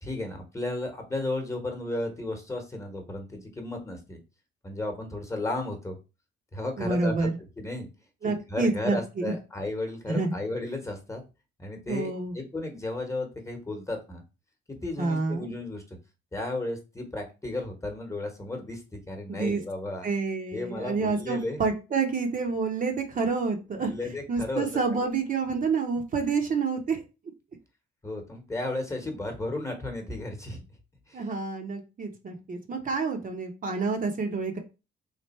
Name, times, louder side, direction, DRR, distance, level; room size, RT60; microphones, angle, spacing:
voice 1, 0.0-4.2 4.6-6.0 6.5-7.3 7.6-7.9 8.2-11.2 11.6-14.2 14.8-15.8 16.3-20.1 20.5-21.6 23.9-25.1 28.0-30.6 31.1-31.2, left 2 dB, 15° left, 4 dB, 1.1 m, -34 dB
voice 2, 6.8-7.3 8.2-9.3 10.1-10.4 11.9-12.3 15.0-15.5 19.3-19.6 20.0-23.9 24.3-27.0 31.1-34.6, right 4 dB, 45° right, 3 dB, 0.8 m, -28 dB
3.3 x 2.5 x 4.2 m, 0.29 s
cardioid pair, 90°, 20 cm